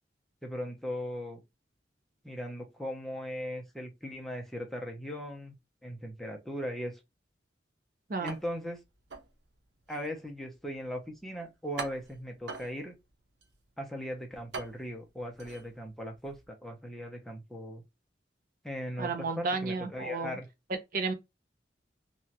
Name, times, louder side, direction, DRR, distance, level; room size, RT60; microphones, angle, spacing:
voice 1, 0.4-1.4 2.2-5.5 5.8-7.0 8.2-8.8 9.9-12.9 13.8-17.8 18.6-20.5, equal, ahead, 0.6 m, -38 dB
sound 1, 8.2-16.5, right 4 dB, 85° right, 0.8 m, -46 dB
voice 2, 19.0-20.4 20.9-21.1, right 4 dB, 55° right, 0.7 m, -32 dB
2.9 x 2.3 x 2.7 m
head